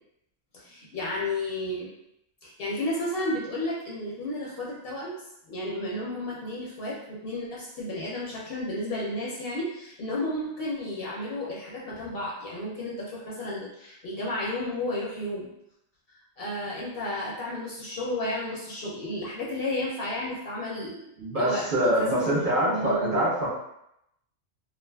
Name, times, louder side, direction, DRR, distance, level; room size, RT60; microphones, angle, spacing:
voice 1, 0.5-1.9 2.4-5.2 5.5-15.4 16.1-23.2, left 1 dB, 60° left, -5 dB, 0.7 m, -32 dB
voice 2, 21.2-23.5, right 1 dB, 50° right, -7 dB, 0.8 m, -25 dB
2.4 x 2.4 x 2.2 m, 0.79 s
omnidirectional pair, 1.2 m